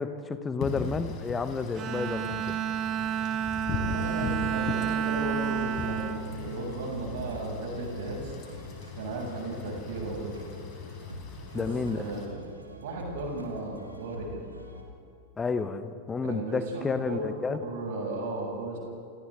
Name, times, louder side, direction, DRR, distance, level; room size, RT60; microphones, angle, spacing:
voice 1, 0.0-2.6 11.5-12.0 15.4-17.6, left 4 dB, 15° left, 11 dB, 1.3 m, -31 dB
Wind / Rain, 0.6-12.3, left 4 dB, 35° left, 5.0 m, -39 dB
Bowed string instrument, 1.7-7.3, right 9 dB, 35° right, 1.3 m, -31 dB
voice 2, 3.7-8.3 8.9-10.4 11.5-12.4 12.8-14.4 16.2-17.3 17.6-18.8, right 2 dB, 55° right, -1 dB, 7.3 m, -35 dB
sound 1, 5.1-14.8, left 1 dB, 80° right, 2.9 m, -44 dB
29.5 x 28.0 x 3.8 m, 2.4 s
figure-of-eight pair, 90°, 0 cm